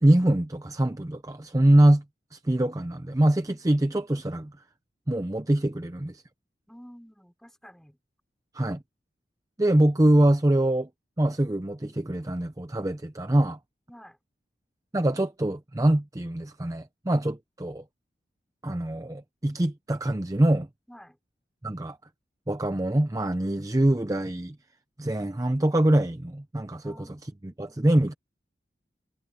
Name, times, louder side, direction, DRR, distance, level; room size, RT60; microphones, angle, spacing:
voice 1, 0.0-2.0 2.3-4.5 5.1-6.1 8.5-8.8 9.6-10.9 11.2-13.6 14.9-17.8 18.6-20.7 21.6-22.0 22.5-24.6 25.0-27.1 27.6-28.1, right 1 dB, 20° right, 0.6 m, -24 dB
voice 2, 6.7-8.0 13.9-14.2 20.9-21.2 26.8-27.4, equal, 5° left, 4.4 m, -50 dB
head